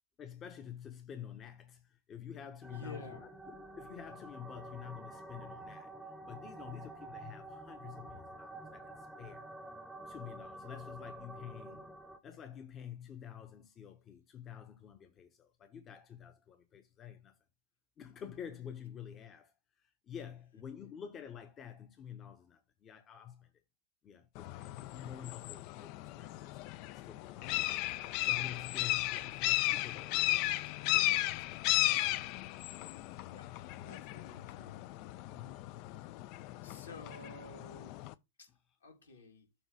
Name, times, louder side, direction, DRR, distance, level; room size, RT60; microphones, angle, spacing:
voice 1, 0.2-9.5 10.1-11.9 12.2-17.4 18.0-23.5 24.0-26.6 26.9-27.7 28.2-31.7 33.6-33.7 35.3-36.0, left 9 dB, 30° left, 0.9 m, -49 dB
sound 1, 2.6-12.2, right 1 dB, 5° right, 0.8 m, -49 dB
voice 2, 2.7-3.3 33.3-33.5 33.8-34.8 35.9-36.0 36.6-38.0 38.4-38.5 38.8-39.5, left 2 dB, 70° left, 2.1 m, -51 dB
sound 2, 24.4-38.1, left 17 dB, 45° left, 0.4 m, -35 dB
7.1 x 3.1 x 6.0 m
figure-of-eight pair, 90°, 0 cm